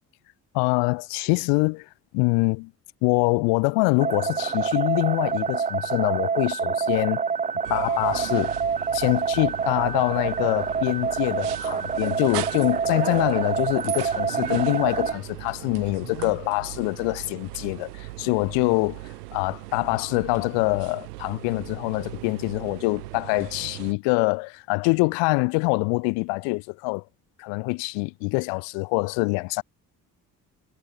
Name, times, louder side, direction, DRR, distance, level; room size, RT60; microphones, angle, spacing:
voice 1, 0.5-2.7 3.0-7.2 7.7-8.5 8.9-27.0 27.4-29.6, left 32 dB, 60° left, 0.9 m, -25 dB
sound 1, 4.0-15.1, right 6 dB, 15° right, 0.6 m, -27 dB
sound 2, 7.6-23.9, right 20 dB, 70° right, 4.2 m, -38 dB
figure-of-eight pair, 45°, 48 cm